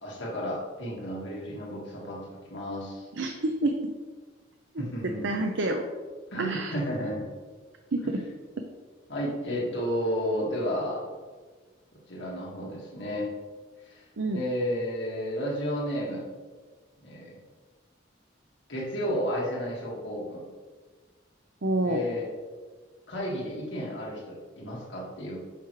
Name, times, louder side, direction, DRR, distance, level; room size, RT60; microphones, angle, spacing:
voice 1, 0.0-3.1 4.8-5.2 6.3-7.3 9.1-11.0 12.1-13.3 13.8-14.0 14.3-16.3 17.0-17.3 18.7-20.5 21.8-22.3 23.1-25.4, equal, 70° left, -4 dB, 1.9 m, -32 dB
voice 2, 3.2-3.9 5.0-5.9 6.4-6.8 7.9-8.2 14.2-14.4 21.6-22.0, right 2 dB, 70° right, 4 dB, 0.7 m, -28 dB
9.0 x 6.1 x 3.2 m, 1.4 s
head